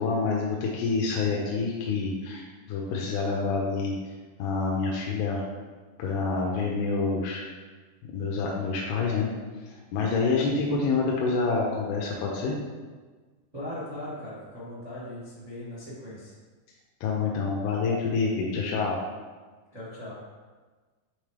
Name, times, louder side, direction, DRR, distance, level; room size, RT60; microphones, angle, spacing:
voice 1, 0.0-3.9 4.4-5.4 6.0-7.4 8.1-9.3 9.9-12.6 17.0-19.0, left 4 dB, 85° left, -2 dB, 2.7 m, -27 dB
voice 2, 13.5-16.3 19.7-20.1, left 1 dB, 80° right, -9 dB, 0.3 m, -39 dB
8.6 x 3.6 x 3.4 m, 1.4 s
omnidirectional pair, 4.4 m